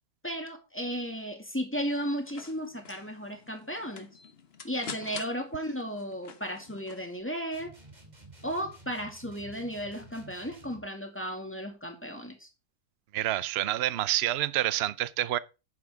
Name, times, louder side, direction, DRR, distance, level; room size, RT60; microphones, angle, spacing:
voice 1, 0.2-4.1 4.6-7.7 8.4-12.5, equal, 10° left, 2.2 m, -35 dB
sound 1, 1.9-7.2, left 6 dB, 45° left, 1.2 m, -47 dB
sound 2, 7.5-10.9, right 2 dB, 25° right, 2.8 m, -51 dB
voice 2, 13.1-15.4, right 13 dB, 60° right, 0.7 m, -28 dB
11.0 x 9.4 x 3.6 m
omnidirectional pair, 1.6 m